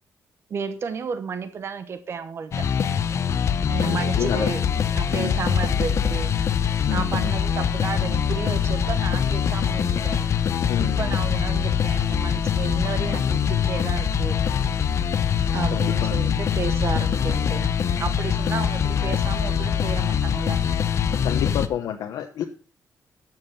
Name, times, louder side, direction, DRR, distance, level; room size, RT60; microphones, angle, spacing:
voice 1, 0.5-2.7 3.7-4.7 4.9-6.3 6.9-10.3 10.8-14.4 15.5-17.7 18.0-20.6, right 6 dB, 45° right, 11 dB, 1.0 m, -32 dB
sound 1, 2.5-21.7, left 7 dB, 50° left, 0.9 m, -23 dB
voice 2, 3.8-4.5 4.8-5.4 6.9-7.3 10.7-11.0 15.7-16.3 21.2-22.4, left 10 dB, 80° left, 4 dB, 1.0 m, -30 dB
12.0 x 7.4 x 5.7 m, 0.39 s
cardioid pair, 150°, 6 cm